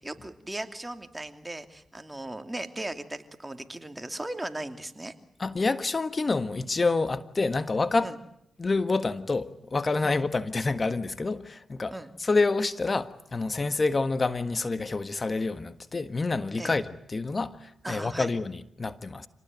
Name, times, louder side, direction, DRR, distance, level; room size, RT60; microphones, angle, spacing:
voice 1, 0.0-5.1 8.0-8.2 10.0-10.2 11.9-12.1 16.6-16.7 17.8-18.3, right 1 dB, 20° right, 2.8 m, -37 dB
voice 2, 5.4-8.1 8.6-11.9 12.2-19.3, left 3 dB, 40° left, 1.5 m, -28 dB
26.5 x 19.0 x 9.2 m
supercardioid pair, 45°, 0 cm